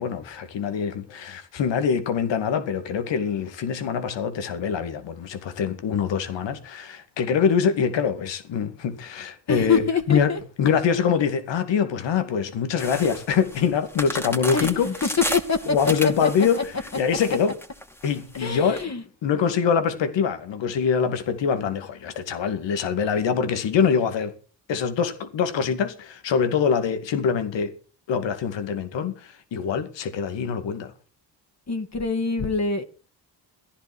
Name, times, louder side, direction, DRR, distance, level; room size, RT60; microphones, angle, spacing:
voice 1, 0.0-9.8 10.1-10.3 10.6-14.9 15.7-17.5 18.0-18.8 19.2-24.3 24.7-27.7 28.1-30.9, left 6 dB, 85° left, 2.4 m, -24 dB
voice 2, 9.5-10.4 14.5-14.9 15.3-15.8 16.0-16.3 18.4-19.0 31.7-32.8, left 4 dB, 40° left, 2.3 m, -25 dB
sound 1, 12.8-18.8, equal, 5° left, 2.5 m, -33 dB
14.5 x 11.0 x 6.2 m
cardioid pair, 70°, 42 cm